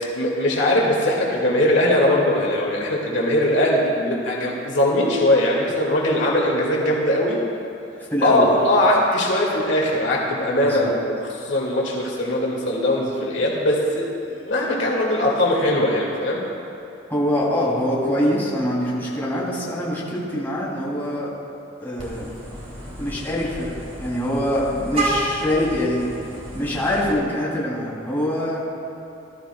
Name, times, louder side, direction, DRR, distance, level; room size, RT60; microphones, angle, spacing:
voice 1, 0.2-7.4 8.2-11.0 11.4-16.4, left 1 dB, 70° left, -3 dB, 1.9 m, -20 dB
voice 2, 8.1-8.6 10.6-10.9 17.1-21.3 21.8-22.2 23.0-26.1 26.5-28.6, left 1 dB, 10° left, -6 dB, 2.8 m, -24 dB
Vehicle horn car horn honking, 22.0-27.1, right 2 dB, 35° right, 2.6 m, -31 dB
19.5 x 13.0 x 2.2 m, 2.9 s
head